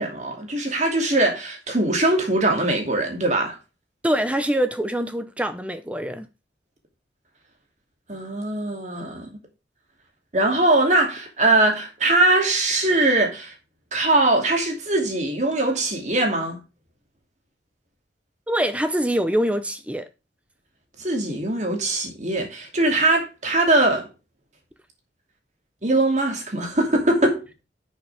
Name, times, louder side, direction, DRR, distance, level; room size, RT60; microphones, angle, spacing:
voice 1, 0.0-3.6 8.1-9.3 10.3-13.5 13.9-16.6 21.0-24.1 25.8-27.5, right 2 dB, 40° right, 2.6 m, -21 dB
voice 2, 4.0-6.3 18.5-20.1, equal, 5° right, 0.6 m, -24 dB
10.5 x 6.5 x 3.4 m
head